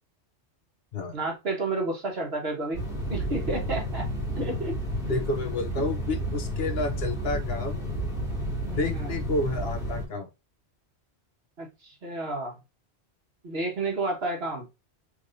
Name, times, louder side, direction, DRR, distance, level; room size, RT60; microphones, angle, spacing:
voice 1, 1.1-2.8 3.1-4.1 4.4-4.8 5.1-5.2 8.6-9.1 11.6-12.6 13.4-14.7, right 2 dB, 60° right, 1.7 m, -31 dB
sound 1, 2.7-10.0, equal, 5° right, 2.0 m, -31 dB
voice 2, 5.1-7.8 8.8-10.3, left 2 dB, 60° left, 1.0 m, -30 dB
4.6 x 3.3 x 2.6 m
omnidirectional pair, 1.2 m